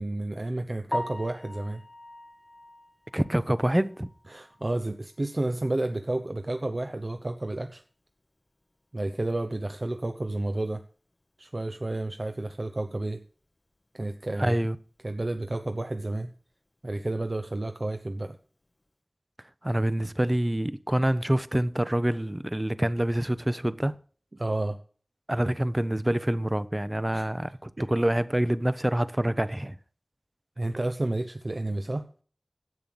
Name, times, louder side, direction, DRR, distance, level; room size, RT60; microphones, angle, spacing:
voice 1, 0.0-1.8 4.3-7.8 8.9-10.8 11.4-13.2 13.9-14.6 15.0-16.3 16.8-18.4 24.3-24.8 27.1-27.3 27.8-27.9 30.6-32.1, right 2 dB, 55° right, 0.8 m, -31 dB
Piano, 0.9-4.9 5.2-5.3 5.8-5.9 6.3-6.4 9.5-9.6 18.1-18.3, left 1 dB, 45° left, 0.9 m, -40 dB
voice 2, 3.1-4.1 14.4-14.8 19.6-23.9 25.3-29.8, right 1 dB, 25° right, 0.7 m, -26 dB
11.0 x 7.7 x 7.0 m
wide cardioid pair, 45°, 0 cm